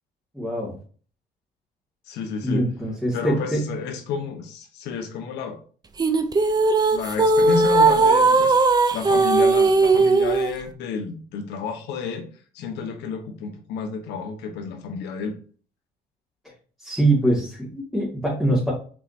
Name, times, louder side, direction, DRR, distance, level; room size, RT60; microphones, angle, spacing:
voice 1, 0.3-0.7 2.4-3.7 16.8-18.7, right 1 dB, ahead, -7 dB, 2.5 m, -23 dB
voice 2, 2.1-2.6 3.1-5.6 6.9-12.2 12.5-15.4, left 6 dB, 85° left, 4 dB, 1.4 m, -31 dB
sound 1, 6.0-10.5, right 3 dB, 25° right, 0.8 m, -18 dB
6.9 x 4.8 x 2.9 m, 0.41 s
cardioid pair, 110°, 17 cm